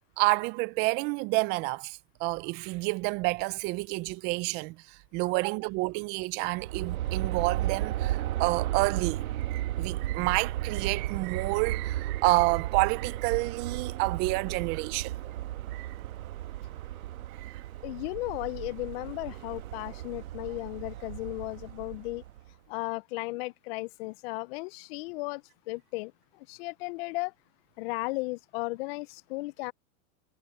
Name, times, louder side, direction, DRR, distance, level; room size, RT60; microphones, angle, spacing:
voice 1, 0.2-15.1 15.7-15.9 17.4-17.6, right 24 dB, 25° right, 0.3 m, -29 dB
Aircraft, 6.5-22.5, right 14 dB, 85° right, 1.3 m, -34 dB
voice 2, 17.8-22.2 22.7-25.4 25.7-26.1 26.4-27.3 27.8-29.7, left 23 dB, 50° left, 0.4 m, -35 dB
supercardioid pair, 130°, 41 cm